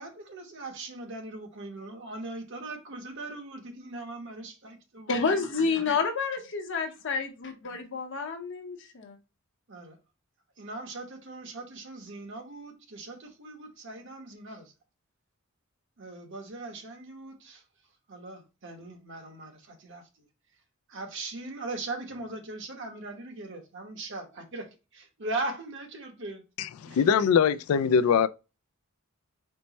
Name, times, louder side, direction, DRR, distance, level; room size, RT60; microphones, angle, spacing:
voice 1, 0.0-5.3 5.6-6.0 9.7-10.0 10.6-14.7 16.0-17.6 18.1-20.3 20.9-26.4 26.9-27.0, right 2 dB, 60° right, 1.0 m, -40 dB
voice 2, 5.1-9.2, left 4 dB, 60° left, 0.8 m, -29 dB
voice 3, 26.6-28.3, left 7 dB, 85° left, 0.3 m, -22 dB
4.4 x 2.1 x 4.1 m
head